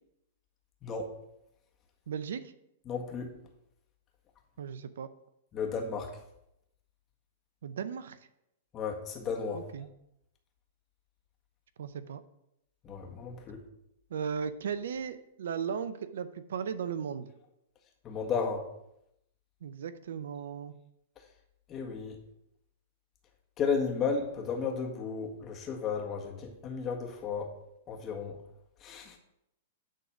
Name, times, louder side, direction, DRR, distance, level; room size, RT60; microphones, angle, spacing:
voice 1, 2.1-2.5 4.6-5.1 7.6-8.2 9.5-9.9 11.8-12.2 14.1-17.3 19.6-20.7, right 7 dB, 70° right, 13 dB, 0.6 m, -36 dB
voice 2, 2.9-3.3 5.5-6.1 8.7-9.6 12.8-13.6 18.0-18.6 21.7-22.2 23.6-27.5 27.9-28.3 28.8-29.2, left 5 dB, 30° left, 2 dB, 1.7 m, -33 dB
10.0 x 3.9 x 6.2 m, 0.82 s
hypercardioid pair, 115°, 0 cm